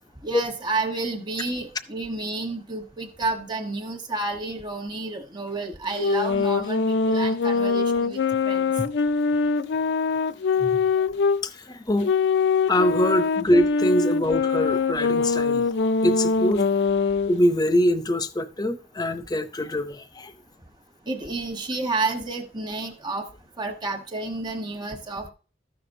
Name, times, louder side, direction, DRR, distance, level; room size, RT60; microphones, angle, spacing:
voice 1, 0.2-8.7 21.1-23.2 23.6-25.3, right 3 dB, 25° right, 1.1 m, -30 dB
sound 1, 5.9-11.4 12.0-17.4, left 4 dB, 70° left, 0.4 m, -23 dB
voice 2, 11.4-12.1 12.7-16.7 17.3-20.3, equal, 20° left, 0.6 m, -24 dB
13.5 x 6.0 x 2.6 m
head